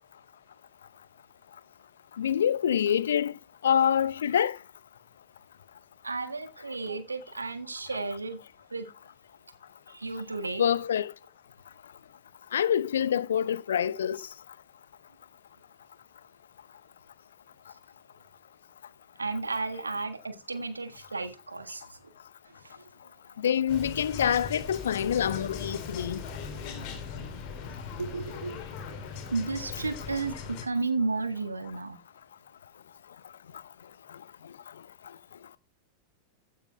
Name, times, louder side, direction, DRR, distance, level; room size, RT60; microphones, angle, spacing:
voice 1, 2.2-3.3 3.6-4.6 10.6-11.1 12.5-14.2 23.4-26.2, left 9 dB, 65° left, 0.6 m, -26 dB
voice 2, 6.0-8.4 8.7-8.9 9.9-10.6 19.2-22.0 22.6-23.1 28.0-28.6 29.2-32.0, right 3 dB, 80° right, 1.5 m, -33 dB
sound 1, 23.7-30.7, left 5 dB, 45° left, 3.4 m, -39 dB
15.0 x 9.2 x 2.3 m
figure-of-eight pair, 90°, 0 cm